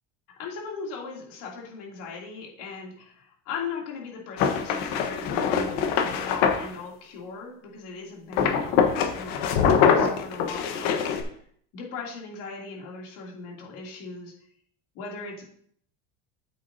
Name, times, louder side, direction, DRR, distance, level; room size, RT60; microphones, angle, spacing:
voice 1, 0.4-11.4 11.7-14.5 14.9-15.4, left 4 dB, 65° left, -2 dB, 3.1 m, -39 dB
sound 1, 4.4-6.7 8.3-11.2, left 7 dB, 85° left, 1.4 m, -23 dB
9.3 x 8.3 x 2.8 m, 0.62 s
cardioid pair, 150°, 35 cm